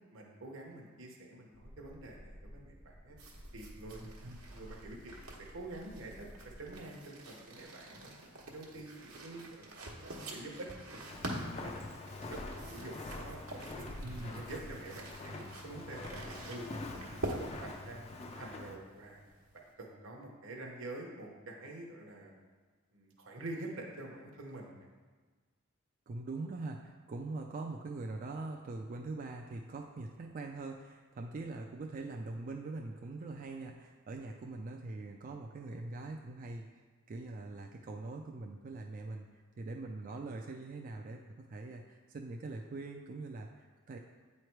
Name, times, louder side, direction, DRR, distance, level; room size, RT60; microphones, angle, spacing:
voice 1, 0.1-3.2 3.5-4.1 4.4-6.3 6.6-8.1 8.5-9.8 10.3-12.0 12.3-16.7 17.1-19.2 19.8-22.3 22.9-24.9, right 2 dB, 60° right, 0 dB, 0.9 m, -47 dB
sound 1, 1.5-6.7, equal, 80° left, 1.3 m, -53 dB
sound 2, 3.2-19.7, right 1 dB, 90° right, 1.1 m, -47 dB
voice 2, 3.9-4.4 14.0-14.4 26.1-39.3 39.6-44.0, right 3 dB, 40° right, 2 dB, 0.3 m, -43 dB
Walk footsteps, 11.1-18.8, left 2 dB, 30° left, 0.5 m, -45 dB
8.6 x 3.2 x 4.5 m, 1.4 s
head